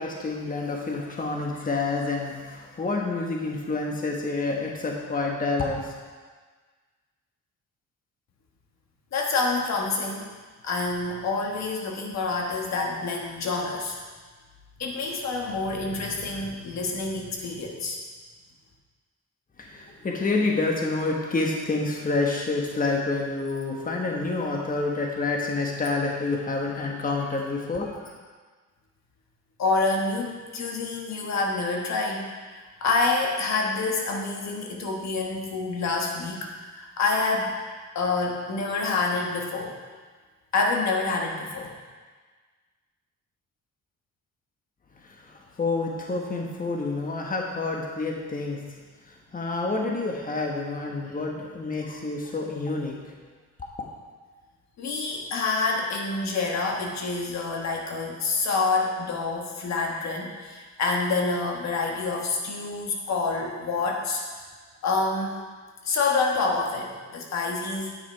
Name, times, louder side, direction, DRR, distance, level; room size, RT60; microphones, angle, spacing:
voice 1, 0.0-5.9 19.6-28.1 45.0-48.6 49.0-53.1, left 3 dB, 30° left, 0 dB, 1.3 m, -28 dB
voice 2, 9.1-10.3 10.6-14.0 14.8-18.0 29.6-37.6 37.9-39.8 40.5-41.7 54.8-64.2 64.8-65.4 65.8-67.9, left 3 dB, 60° left, 0 dB, 1.5 m, -27 dB
9.5 x 6.2 x 4.6 m, 1.4 s
cardioid pair, 90°, 30 cm